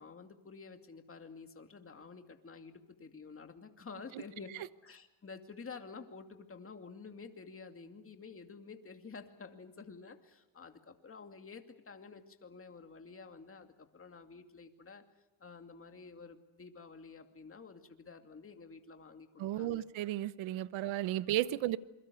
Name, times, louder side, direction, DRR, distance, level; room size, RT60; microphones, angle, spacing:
voice 1, 0.0-15.0 15.4-19.8, left 4 dB, 25° left, 2.5 m, -50 dB
voice 2, 19.4-21.8, right 14 dB, 70° right, 1.0 m, -34 dB
28.0 x 22.5 x 7.0 m
cardioid pair, 95°, 49 cm